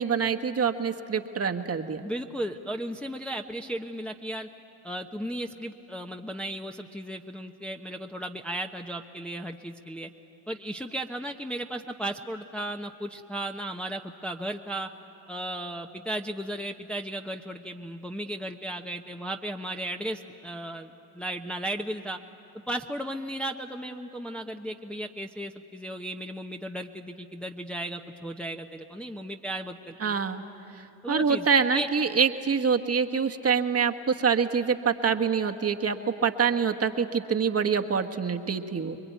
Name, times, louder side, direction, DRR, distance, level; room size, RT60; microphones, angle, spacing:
voice 1, 0.0-2.0 30.0-30.4 31.1-39.0, right 6 dB, 30° right, 5 dB, 1.4 m, -25 dB
voice 2, 2.0-4.5 4.8-10.1 10.5-14.9 15.3-22.2 22.7-30.2 31.0-31.9, right 1 dB, ahead, 2 dB, 1.0 m, -35 dB
26.5 x 22.0 x 9.4 m, 2.7 s
supercardioid pair, 75°, 47 cm